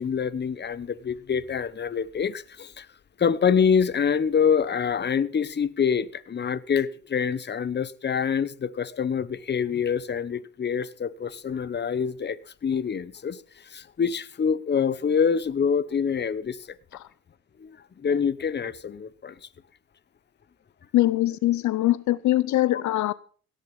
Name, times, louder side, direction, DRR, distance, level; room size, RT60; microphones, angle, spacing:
voice 1, 0.0-2.9 3.2-16.8 17.6-19.5, left 7 dB, 35° left, 1.0 m, -26 dB
voice 2, 20.9-23.1, left 15 dB, 70° left, 0.6 m, -22 dB
17.5 x 10.5 x 5.4 m
cardioid pair, 90°, 30 cm